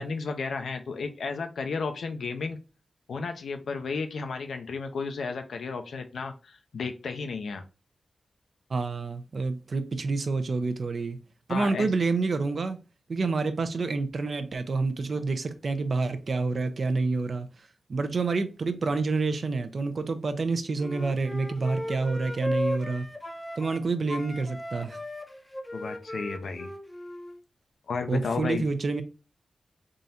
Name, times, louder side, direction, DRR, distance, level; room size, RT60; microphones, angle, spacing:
voice 1, 0.0-2.6 3.1-7.6 11.5-11.9 25.7-26.7 27.9-28.6, left 4 dB, 85° left, 0.6 m, -33 dB
voice 2, 8.7-11.2 11.5-12.8 13.1-17.5 17.9-23.1 23.6-25.0 28.1-29.0, right 3 dB, 60° right, 0.6 m, -28 dB
Wind instrument woodwind instrument, 20.8-23.8 24.1-27.4, left 1 dB, 10° left, 0.6 m, -36 dB
3.8 x 2.6 x 4.2 m
cardioid pair, 75°, 0 cm